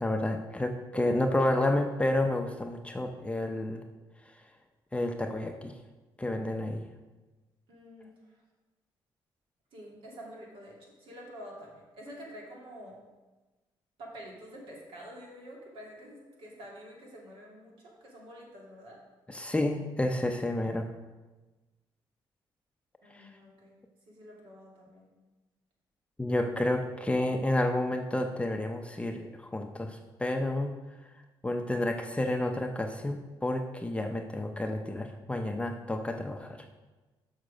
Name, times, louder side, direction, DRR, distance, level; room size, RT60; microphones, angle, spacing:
voice 1, 0.0-3.8 4.9-5.7 6.2-6.8 19.3-20.9 23.1-23.3 26.2-30.7 31.4-36.7, left 1 dB, 15° left, 4 dB, 0.6 m, -30 dB
voice 2, 7.7-8.4 9.7-13.0 14.0-19.0 23.0-23.7 24.1-25.0, equal, 70° right, -2 dB, 2.6 m, -48 dB
6.5 x 6.4 x 5.1 m, 1.2 s
cardioid pair, 90°, 9 cm